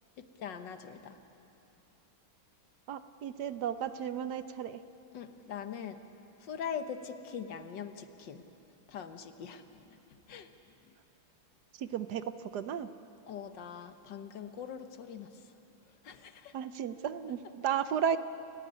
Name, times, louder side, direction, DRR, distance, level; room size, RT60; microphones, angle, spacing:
voice 1, 0.2-1.2 5.1-6.0 6.4-8.4 8.9-10.0 10.3-10.5 13.3-15.5 16.0-16.6, left 7 dB, 75° left, 9 dB, 1.8 m, -42 dB
voice 2, 2.9-4.8 11.8-12.9 16.5-18.2, right 8 dB, 65° right, 12 dB, 1.2 m, -34 dB
29.0 x 15.5 x 9.6 m, 3.0 s
omnidirectional pair, 2.0 m